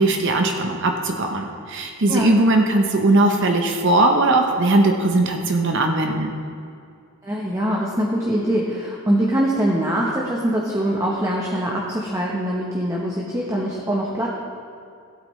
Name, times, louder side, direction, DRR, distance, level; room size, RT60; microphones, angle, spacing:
voice 1, 0.0-6.3, right 2 dB, 60° right, 3 dB, 0.8 m, -19 dB
voice 2, 7.2-14.3, right 1 dB, 15° right, -3 dB, 0.9 m, -23 dB
15.5 x 8.4 x 3.2 m, 2.4 s
head